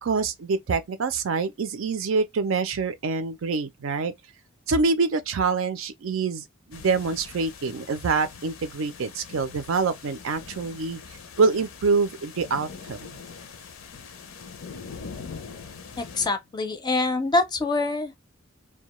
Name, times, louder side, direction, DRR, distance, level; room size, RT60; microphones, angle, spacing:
voice 1, 0.0-4.1 4.7-11.0 11.4-13.1, right 4 dB, 80° right, 0.5 m, -26 dB
sound 1, 6.7-16.3, left 5 dB, 75° left, 0.5 m, -42 dB
voice 2, 16.0-18.1, left 2 dB, 20° left, 0.4 m, -25 dB
2.2 x 2.2 x 2.9 m
head